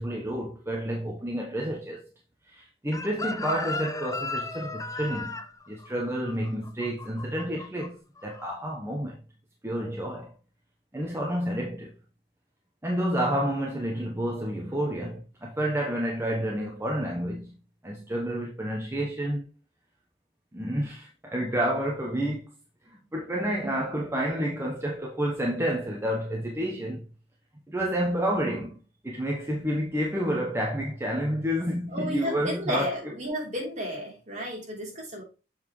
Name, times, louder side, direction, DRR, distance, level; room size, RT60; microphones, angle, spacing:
voice 1, 0.0-2.0 2.5-5.3 5.7-9.2 9.6-10.3 10.9-11.9 12.8-17.6 17.8-19.4 20.5-22.5 22.9-27.1 27.7-32.9, equal, 15° right, 1.0 m, -29 dB
Chicken rooster, 2.9-7.9 8.2-8.5, left 3 dB, 20° left, 0.6 m, -35 dB
voice 2, 31.9-35.2, equal, 45° right, 3.3 m, -33 dB
7.3 x 5.5 x 3.2 m
head